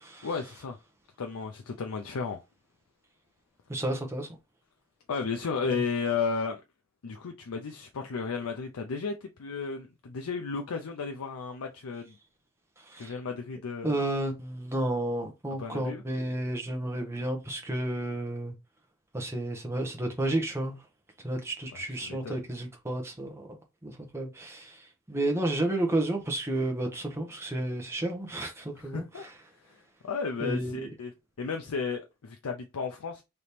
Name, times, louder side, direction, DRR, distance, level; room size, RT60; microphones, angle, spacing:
voice 1, 0.2-0.8 1.2-2.4 5.1-6.6 7.0-12.2 13.0-14.0 15.6-16.0 21.7-22.4 28.7-29.3 29.6-31.1 31.4-33.2, left 5 dB, 80° left, 0.5 m, -34 dB
voice 2, 3.7-4.3 12.9-13.1 13.8-18.5 19.1-20.8 21.2-23.5 23.8-24.8 25.1-29.0 30.4-30.9, right 1 dB, 10° right, 0.9 m, -31 dB
3.4 x 3.0 x 4.2 m
head